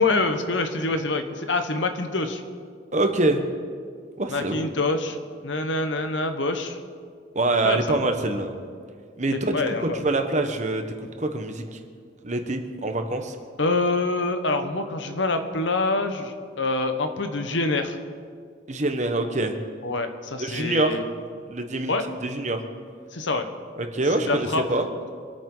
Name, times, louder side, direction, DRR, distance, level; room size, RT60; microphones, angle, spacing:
voice 1, 0.0-2.4 4.3-5.2 5.4-6.8 7.6-8.0 9.5-10.0 13.6-18.0 19.8-21.0 21.9-22.1 23.1-23.5 24.3-24.6, left 3 dB, 80° left, 7 dB, 1.2 m, -25 dB
voice 2, 2.9-3.4 4.2-4.7 7.3-8.5 9.2-11.8 12.2-13.4 18.7-19.5 20.4-21.0 21.5-22.0 22.2-22.6 23.8-24.9, right 2 dB, 40° right, 5 dB, 1.2 m, -25 dB
25.5 x 9.2 x 4.0 m, 2.1 s
head